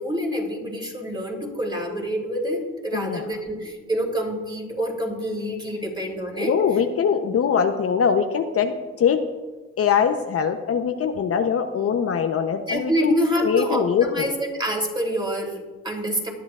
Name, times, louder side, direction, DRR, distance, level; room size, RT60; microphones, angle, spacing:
voice 1, 0.0-6.5 12.7-16.3, equal, 15° right, 0 dB, 3.0 m, -27 dB
voice 2, 2.9-3.3 6.4-9.2 9.8-13.1 13.4-14.3, left 7 dB, 50° left, 5 dB, 0.8 m, -22 dB
19.5 x 10.5 x 2.4 m, 1.3 s
cardioid pair, 90°, 30 cm